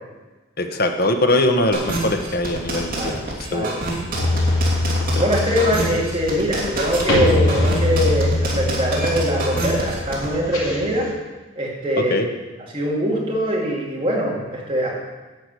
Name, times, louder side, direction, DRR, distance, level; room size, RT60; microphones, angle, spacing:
voice 1, 0.6-3.2 3.5-3.7 5.1-5.3 12.1-12.3, left 1 dB, 50° left, 5 dB, 1.0 m, -21 dB
sound 1, 1.7-10.3, right 2 dB, 45° right, 2.8 m, -27 dB
voice 2, 3.5-4.3 5.2-11.1 11.6-12.3 12.7-14.9, equal, 25° right, -4 dB, 2.4 m, -22 dB
sound 2, 4.1-11.1, left 2 dB, 80° left, 4.1 m, -23 dB
11.0 x 5.0 x 8.2 m, 1.2 s
head